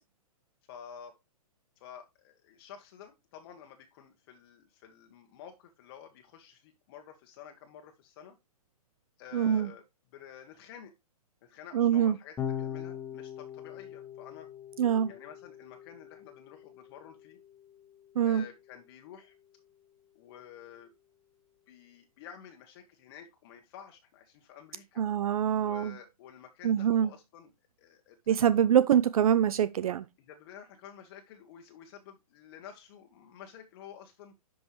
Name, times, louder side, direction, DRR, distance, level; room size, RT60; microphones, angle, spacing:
voice 1, 0.7-1.2 1.8-8.4 9.2-9.8 10.1-10.9 11.4-14.5 15.1-17.4 18.2-19.3 20.1-20.9 21.7-25.0 25.6-28.5 30.3-34.3, left 8 dB, 40° left, 1.3 m, -51 dB
voice 2, 9.3-9.7 11.7-12.2 14.8-15.1 18.2-18.4 25.0-25.9 26.6-27.1 28.3-30.1, right 9 dB, 70° right, 0.6 m, -24 dB
Electric guitar / Bass guitar, 12.4-18.8, left 9 dB, 15° left, 1.5 m, -42 dB
11.0 x 5.5 x 3.1 m
hypercardioid pair, 150°, 19 cm